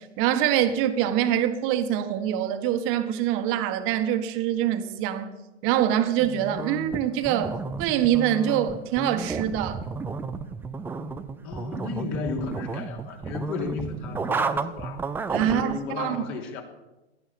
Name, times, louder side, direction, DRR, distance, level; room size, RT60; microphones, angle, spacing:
voice 1, 0.0-5.3 5.6-9.8 15.3-16.3, right 10 dB, 35° right, 1.7 m, -25 dB
sound 1, 6.2-15.8, right 4 dB, 5° right, 0.4 m, -32 dB
voice 2, 11.4-15.0 15.4-16.6, left 4 dB, 35° left, 3.3 m, -34 dB
17.0 x 12.0 x 7.1 m
hypercardioid pair, 125°, 35 cm